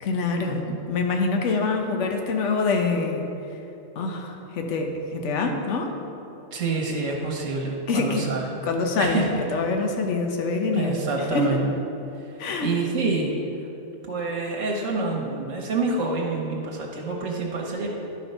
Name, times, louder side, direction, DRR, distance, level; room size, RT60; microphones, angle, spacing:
voice 1, 0.0-3.2 4.0-5.9 7.9-8.3 8.6-11.5 12.4-12.7, left 4 dB, 70° left, 3 dB, 1.2 m, -25 dB
voice 2, 6.5-8.6 9.0-9.3 10.7-11.7 12.3-13.3 14.1-17.9, right 3 dB, 80° right, -1 dB, 1.4 m, -27 dB
11.5 x 4.4 x 5.4 m, 2.9 s
omnidirectional pair, 1.3 m